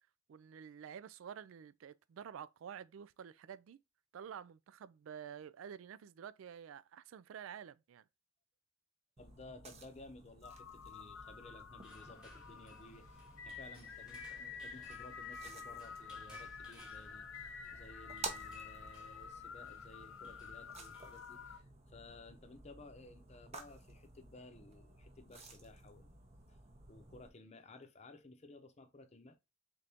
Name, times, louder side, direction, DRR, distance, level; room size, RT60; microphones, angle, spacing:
voice 1, 0.3-3.8 4.1-8.0, right 8 dB, 75° right, 0.3 m, -50 dB
voice 2, 9.2-26.1 26.9-29.4, left 2 dB, 30° left, 0.7 m, -56 dB
sound 1, 9.2-27.3, right 3 dB, 30° right, 0.7 m, -53 dB
sound 2, 10.4-21.6, left 6 dB, 80° left, 0.7 m, -50 dB
sound 3, 11.8-21.6, left 1 dB, 5° right, 1.3 m, -61 dB
3.8 x 3.5 x 2.7 m
head